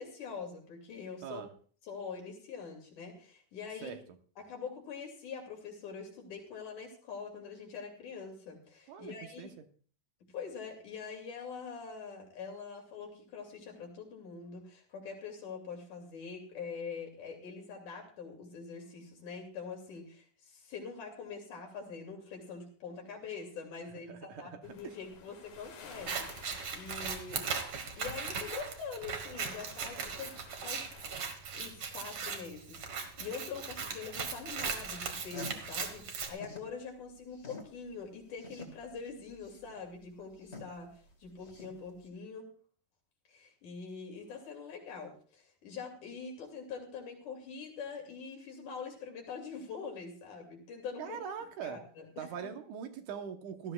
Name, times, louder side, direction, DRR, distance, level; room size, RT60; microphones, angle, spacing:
voice 1, 0.0-1.4 1.8-4.0 4.4-9.6 10.3-27.6 28.0-30.4 30.6-30.9 31.5-40.9 41.2-42.5 43.3-51.2 51.6-52.5, left 5 dB, 70° left, 1 dB, 4.1 m, -44 dB
voice 2, 8.9-9.5 24.1-25.0 51.0-51.8 52.2-53.7, right 8 dB, 75° right, 6 dB, 2.4 m, -42 dB
sound 1, 24.6-31.2, left 5 dB, 90° left, 3.7 m, -54 dB
Scissors, 25.9-36.3, right 5 dB, 50° right, 1.8 m, -38 dB
sound 2, 35.3-36.7 37.1-42.1, left 2 dB, 25° left, 1.6 m, -49 dB
17.5 x 13.0 x 2.4 m, 0.43 s
omnidirectional pair, 3.7 m